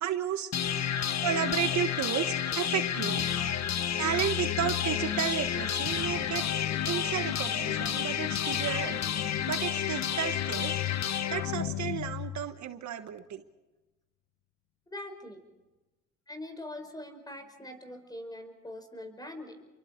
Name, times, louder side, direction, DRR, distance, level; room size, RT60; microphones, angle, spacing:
voice 1, 0.0-0.5 1.2-3.3 4.0-6.4 6.8-9.0 9.5-10.8 11.3-13.4, right 10 dB, 65° right, 9 dB, 1.3 m, -33 dB
sound 1, 0.5-12.5, left 9 dB, 60° left, 1.4 m, -30 dB
voice 2, 14.9-15.4 16.3-19.7, left 1 dB, 15° left, 6 dB, 5.3 m, -43 dB
30.0 x 23.5 x 4.5 m, 1.1 s
cardioid pair, 90°, 30 cm